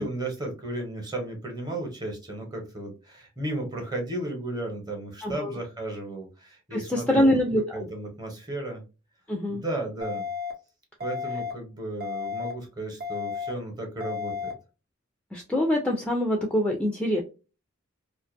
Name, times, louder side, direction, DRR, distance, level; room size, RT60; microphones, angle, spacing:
voice 1, 0.0-7.4 7.7-8.8 9.5-10.3 11.0-14.5, right 1 dB, 20° right, 2 dB, 0.9 m, -34 dB
voice 2, 5.2-5.6 6.7-7.9 9.3-9.6 15.3-17.2, left 1 dB, 5° left, 1 dB, 0.3 m, -24 dB
sound 1, 10.0-10.5 11.0-11.5 12.0-12.5 13.0-13.5 14.0-14.5, left 6 dB, 50° right, 0.7 m, -32 dB
2.5 x 2.4 x 2.4 m, 0.30 s
head